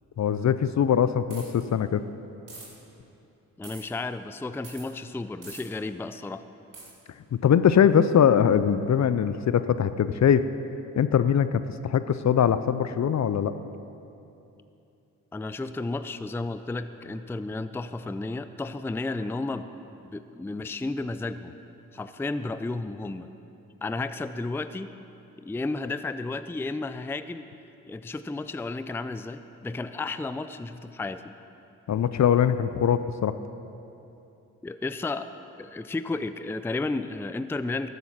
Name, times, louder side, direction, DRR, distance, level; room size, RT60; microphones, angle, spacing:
voice 1, 0.2-2.0 7.3-10.4 11.0-13.5 31.9-33.3, left 8 dB, 50° left, 13 dB, 0.6 m, -22 dB
sound 1, 1.3-1.6 2.5-2.7 3.6-3.8 4.6-4.9 5.4-5.6 6.7-6.9, right 3 dB, 55° right, 3.3 m, -44 dB
voice 2, 3.6-6.4 15.3-19.7 20.0-21.5 21.9-23.3 23.8-24.9 25.4-27.4 27.9-31.3 34.6-35.3 35.6-37.9, left 3 dB, 5° left, 12 dB, 0.4 m, -32 dB
13.5 x 8.1 x 5.8 m, 2.8 s
supercardioid pair, 45°, 37 cm